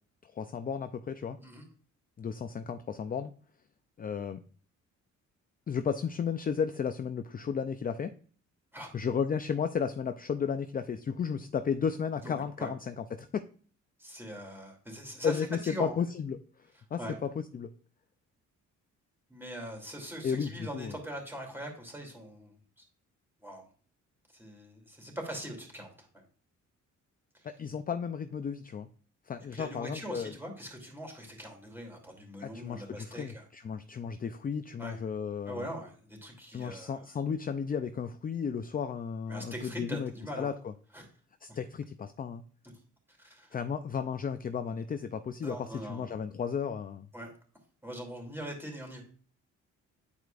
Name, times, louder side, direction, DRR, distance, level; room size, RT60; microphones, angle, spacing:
voice 1, 0.2-1.4 2.2-3.3 4.0-4.4 5.7-8.1 8.9-13.3 15.2-16.4 16.9-17.7 20.2-20.9 27.4-28.9 29.3-30.3 32.4-35.7 36.5-40.1 40.4-40.7 41.4-42.4 43.5-47.1, left 6 dB, 30° left, 9 dB, 0.5 m, -33 dB
voice 2, 12.2-12.7 14.0-16.0 17.0-17.2 19.3-22.6 23.4-23.7 24.3-26.2 27.3-27.5 29.5-33.4 34.8-35.0 35.4-37.1 39.3-40.5 40.9-41.1 41.5-41.6 43.2-43.6 45.4-46.2 47.1-47.3 47.8-49.0, equal, 5° right, 1 dB, 2.7 m, -42 dB
9.6 x 4.6 x 2.5 m, 0.43 s
cardioid pair, 90°, 30 cm